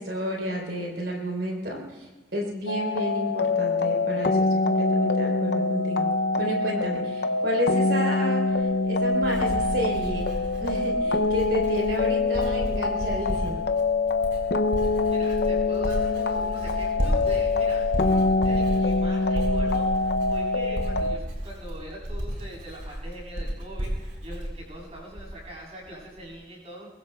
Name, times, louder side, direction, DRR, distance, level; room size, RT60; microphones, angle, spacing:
voice 1, 0.0-6.1 6.4-10.3 10.6-13.6, equal, 65° right, -1 dB, 3.6 m, -31 dB
sound 1, 2.7-21.2, left 3 dB, 60° left, 0.6 m, -25 dB
Writing, 8.5-25.5 25.8-26.3, equal, 85° right, 4.4 m, -33 dB
voice 2, 15.1-26.9, equal, 35° right, -3 dB, 7.1 m, -42 dB
23.5 x 22.5 x 2.3 m, 1.2 s
head